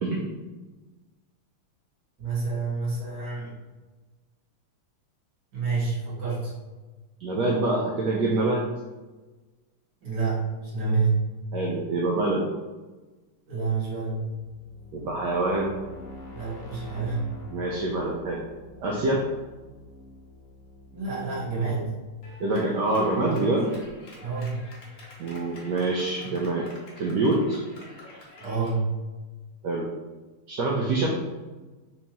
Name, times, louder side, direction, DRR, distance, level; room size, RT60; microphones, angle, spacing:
voice 1, 2.2-3.6 5.5-6.5 10.0-11.2 13.5-14.2 16.3-17.3 20.9-21.9 24.2-24.6 28.4-28.9, right 4 dB, 55° right, -7 dB, 1.6 m, -28 dB
voice 2, 7.2-8.7 11.5-12.5 14.9-15.8 17.5-18.4 18.8-19.2 22.4-23.7 25.2-26.7 27.0-27.6 29.6-29.9 30.5-31.2, right 2 dB, 90° right, -2 dB, 0.9 m, -25 dB
sound 1, 14.0-22.8, left 2 dB, 80° left, 1.8 m, -47 dB
Clapping, 22.2-28.8, left 1 dB, 60° left, 0.9 m, -48 dB
4.4 x 2.6 x 2.9 m, 1.2 s
omnidirectional pair, 2.4 m